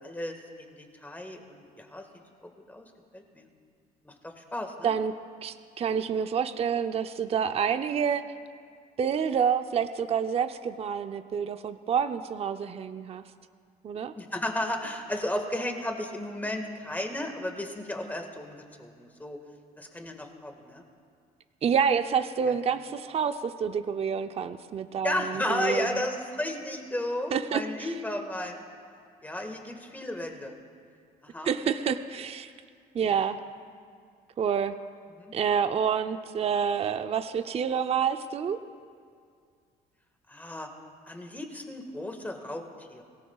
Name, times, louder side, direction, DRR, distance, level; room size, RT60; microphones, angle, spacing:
voice 1, 0.0-2.1 2.4-3.5 4.0-4.9 14.2-19.4 19.8-20.8 22.4-22.5 25.0-28.6 29.2-30.6 31.2-31.5 33.0-33.1 35.1-35.4 40.3-40.7 41.1-43.0, left 1 dB, 10° left, 4 dB, 1.7 m, -34 dB
voice 2, 5.4-8.2 9.0-13.2 13.8-14.1 21.6-26.0 27.3-27.9 31.4-32.5 32.9-33.4 34.4-34.8 35.3-38.6, right 7 dB, 35° right, 9 dB, 0.6 m, -28 dB
23.0 x 18.0 x 2.4 m, 2.2 s
cardioid pair, 110°, 17 cm